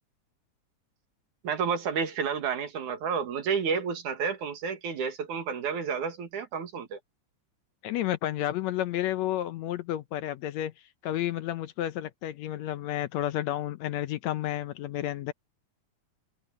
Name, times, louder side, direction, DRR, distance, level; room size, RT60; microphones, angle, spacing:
voice 1, 1.4-7.0, right 6 dB, 75° right, 3.5 m, -30 dB
voice 2, 7.8-10.7 11.0-15.3, left 13 dB, 75° left, 1.8 m, -31 dB
omnidirectional pair, 3.5 m